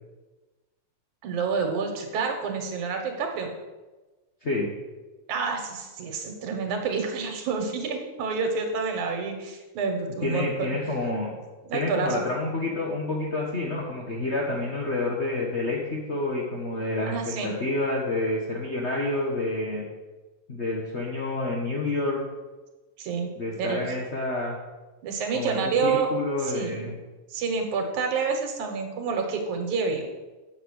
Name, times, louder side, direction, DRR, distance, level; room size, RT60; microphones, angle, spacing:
voice 1, 1.2-3.5 5.3-10.7 11.7-12.2 17.1-17.5 23.0-23.9 25.0-26.1 26.4-26.9 27.3-30.1, right 5 dB, 85° right, 4 dB, 2.8 m, -28 dB
voice 2, 10.2-11.3 11.7-19.8 20.5-22.2 23.4-24.6 25.3-27.0, left 2 dB, 50° left, -2 dB, 0.8 m, -28 dB
8.2 x 6.7 x 6.4 m, 1.2 s
omnidirectional pair, 3.3 m